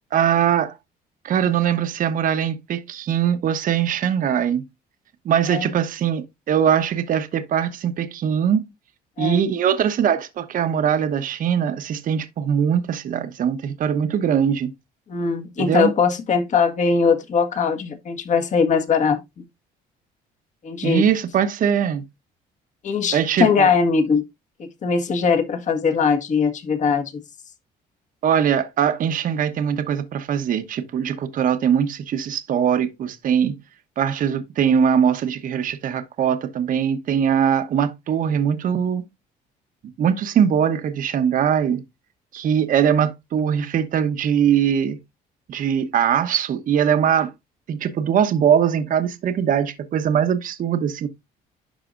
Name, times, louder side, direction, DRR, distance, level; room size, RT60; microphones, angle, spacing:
voice 1, 0.1-0.8 1.2-4.6 5.2-8.7 9.2-14.7 15.6-15.9 20.8-22.0 23.1-23.7 28.2-33.6 34.0-39.0 40.0-41.8 42.3-45.0 45.5-47.3 47.7-51.1, right 8 dB, 55° right, 1.0 m, -21 dB
voice 2, 15.1-19.2 20.6-21.0 22.8-24.2 24.6-27.2, left 5 dB, 45° left, 1.6 m, -20 dB
11.5 x 4.1 x 2.5 m
cardioid pair, 110°, 17 cm